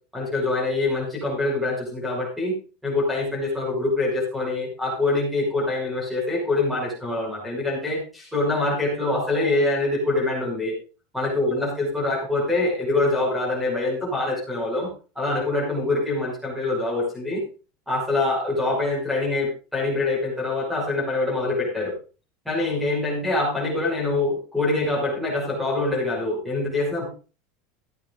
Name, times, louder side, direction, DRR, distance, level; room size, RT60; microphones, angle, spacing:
voice 1, 0.1-2.5 2.8-10.7 11.1-14.9 15.2-17.4 17.9-21.9 22.4-27.0, left 2 dB, ahead, -2 dB, 5.9 m, -24 dB
15.0 x 8.7 x 3.9 m, 0.35 s
supercardioid pair, 175°, 0 cm